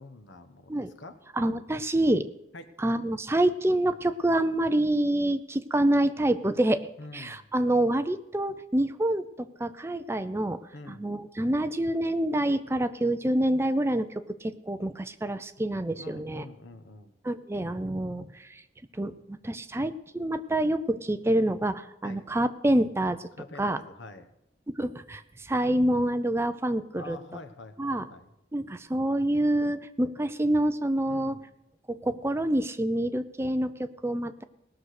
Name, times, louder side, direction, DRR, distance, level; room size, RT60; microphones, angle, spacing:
voice 1, 0.0-1.2 2.5-2.7 7.0-7.4 10.7-11.0 15.6-15.7 15.9-17.1 22.0-22.2 23.4-24.3 26.9-28.3 31.1-31.5, left 2 dB, 85° left, 9 dB, 1.2 m, -46 dB
voice 2, 1.4-2.2 2.8-6.9 7.1-10.6 10.9-14.1 14.4-16.4 17.2-18.6 18.9-23.2 23.6-23.8 24.7-27.2 27.8-28.1 28.5-31.4 31.9-34.4, right 1 dB, 15° right, 11 dB, 0.4 m, -27 dB
18.5 x 6.4 x 6.4 m, 0.87 s
head